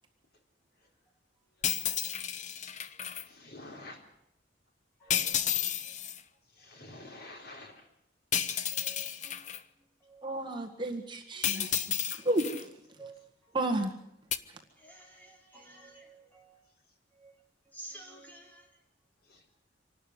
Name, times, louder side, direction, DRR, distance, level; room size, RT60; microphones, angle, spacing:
sound 1, 1.6-3.2 5.1-6.2 8.3-9.6 11.4-12.6 14.3-14.4, left 9 dB, 40° left, 0.8 m, -32 dB
voice 1, 3.2-4.0 5.0-5.2 6.5-7.9 11.5-11.7 13.0-13.1 17.8-17.9 19.2-19.4, left 2 dB, 55° left, 3 dB, 3.7 m, -49 dB
voice 2, 5.0-5.6 5.8-5.9 7.2-7.3 8.7-9.4 10.0-10.3 11.4-11.7 13.0-13.6 14.8-16.6 17.2-17.3 17.7-18.7, right 2 dB, 10° left, -1 dB, 4.6 m, -52 dB
voice 3, 10.2-12.0 12.2-12.7 13.5-13.9 14.5-14.6, right 1 dB, 25° right, 3 dB, 1.7 m, -32 dB
26.0 x 12.5 x 9.7 m, 0.79 s
head